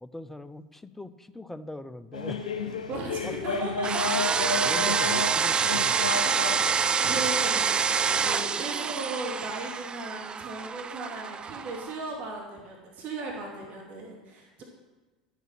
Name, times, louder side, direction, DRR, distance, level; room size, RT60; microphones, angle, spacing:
voice 1, 0.0-2.7 3.2-3.3 4.7-6.8, left 1 dB, 5° left, 14 dB, 0.7 m, -42 dB
sound 1, 2.1-8.4, left 4 dB, 80° left, 1.2 m, -33 dB
voice 2, 2.9-4.4 7.0-14.6, right 2 dB, 40° right, -1 dB, 2.8 m, -37 dB
sound 2, 3.8-12.0, right 6 dB, 25° right, 0.4 m, -27 dB
12.5 x 8.1 x 6.0 m, 1.2 s
figure-of-eight pair, 75°, 4 cm